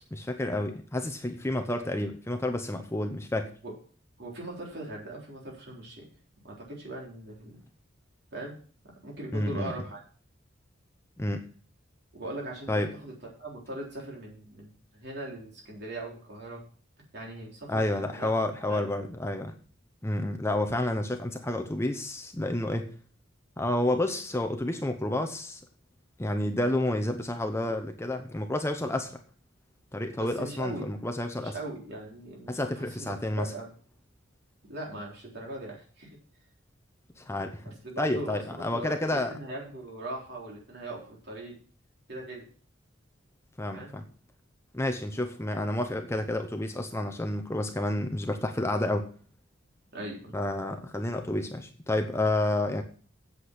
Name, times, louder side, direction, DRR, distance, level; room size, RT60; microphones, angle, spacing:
voice 1, 0.1-3.5 9.3-9.8 11.2-11.4 12.7-12.9 17.7-19.5 20.0-22.9 23.6-25.6 26.2-29.2 29.9-31.5 32.5-33.5 37.2-39.3 43.6-44.0 44.7-49.1 50.3-52.8, left 1 dB, 15° left, 6 dB, 0.8 m, -30 dB
voice 2, 4.2-6.1 6.4-7.6 8.3-8.5 9.0-10.0 12.1-13.1 13.4-16.6 17.1-18.3 18.7-18.8 30.2-30.9 31.4-33.7 34.7-36.2 37.6-41.6 42.1-42.5 43.7-43.9 45.1-45.3 49.9-50.4, right 1 dB, 55° right, -2 dB, 3.9 m, -40 dB
8.3 x 8.3 x 6.0 m, 0.42 s
head